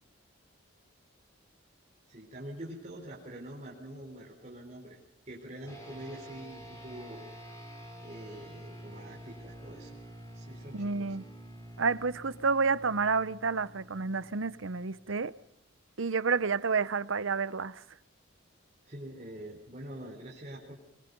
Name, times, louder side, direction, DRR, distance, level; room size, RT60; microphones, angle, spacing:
voice 1, 2.1-5.0 5.3-7.3 8.0-9.9 10.3-11.2 15.1-15.2 18.8-20.8, right 1 dB, 35° right, 4.1 m, -45 dB
sound 1, 5.7-15.4, equal, 15° left, 6.2 m, -48 dB
voice 2, 10.7-11.2 11.8-15.3 16.0-17.8, right 4 dB, 85° right, 0.8 m, -29 dB
22.5 x 22.5 x 5.4 m
head